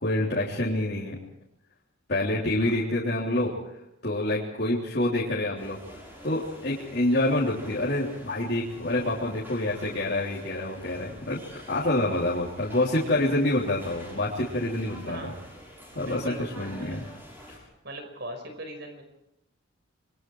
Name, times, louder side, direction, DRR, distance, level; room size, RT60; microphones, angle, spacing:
voice 1, 0.0-1.2 2.1-3.5 4.0-6.0 6.2-15.3 16.0-17.0 17.5-17.6, left 1 dB, 50° left, -6 dB, 3.4 m, -27 dB
sound 1, 5.6-17.6, equal, 10° right, 6.3 m, -48 dB
voice 2, 15.1-15.4 15.9-17.0 17.8-19.0, right 1 dB, 55° right, 6 dB, 5.4 m, -40 dB
28.0 x 22.5 x 4.8 m, 0.83 s
head